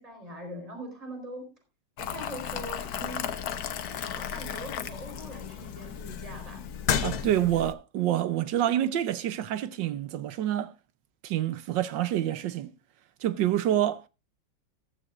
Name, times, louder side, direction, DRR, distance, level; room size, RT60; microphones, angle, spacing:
voice 1, 0.0-1.5 2.0-3.5 3.9-6.6, right 1 dB, 20° right, 4.4 m, -42 dB
Boiling, 2.0-7.7, left 8 dB, 60° left, 1.3 m, -33 dB
voice 2, 7.0-10.7 11.2-12.7 13.2-14.0, right 12 dB, 80° right, 1.5 m, -27 dB
14.5 x 13.0 x 2.5 m
omnidirectional pair, 2.0 m